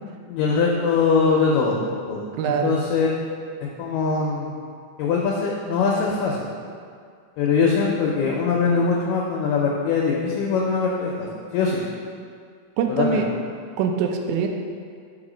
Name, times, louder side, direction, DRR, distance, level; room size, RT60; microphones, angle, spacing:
voice 1, 0.3-1.8 2.1-3.1 3.8-4.6 5.0-6.5 7.4-11.3 11.5-11.8 12.9-13.2, left 5 dB, 80° left, -2 dB, 2.1 m, -22 dB
voice 2, 2.3-2.8 12.8-13.3 13.8-14.5, right 6 dB, 85° right, 3 dB, 2.3 m, -23 dB
5.6 x 4.2 x 4.9 m, 2.2 s
omnidirectional pair, 4.2 m